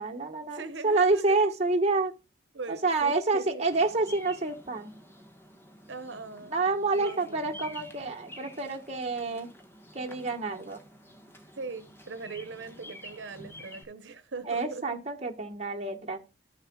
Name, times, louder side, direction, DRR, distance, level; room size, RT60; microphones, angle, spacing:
voice 1, 0.0-2.1 2.7-4.9 6.5-9.5 9.9-10.8 14.4-16.2, right 3 dB, 35° right, 1.3 m, -28 dB
voice 2, 0.5-1.4 2.5-3.6 5.9-6.6 6.9-7.4 11.5-15.1, right 4 dB, 85° right, 0.9 m, -40 dB
Bird vocalization bird call bird song, 3.7-13.8, left 1 dB, 15° left, 1.3 m, -49 dB
14.0 x 6.6 x 2.3 m
head